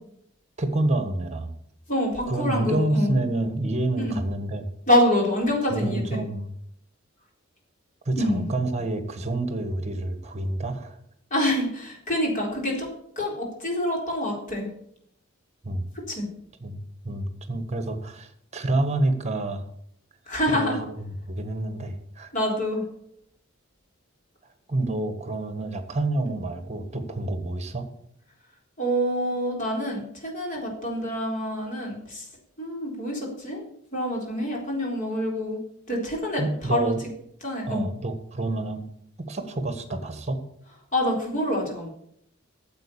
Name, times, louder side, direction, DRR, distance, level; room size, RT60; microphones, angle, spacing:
voice 1, 0.6-1.5 2.3-4.7 5.7-6.5 8.0-11.0 15.6-15.9 16.6-19.6 20.5-22.3 24.7-27.9 36.4-37.0 37.7-38.8 39.2-40.4, right 2 dB, 35° right, 9 dB, 1.4 m, -28 dB
voice 2, 1.9-3.1 4.0-4.1 4.9-6.2 8.2-8.5 11.3-12.9 13.2-14.7 15.9-16.3 20.3-20.8 22.3-22.8 28.8-32.3 32.6-33.6 33.9-35.6 35.9-36.4 36.7-36.9 37.4-37.8 40.9-41.9, left 1 dB, 40° left, -1 dB, 3.9 m, -26 dB
9.1 x 7.6 x 8.6 m, 0.73 s
head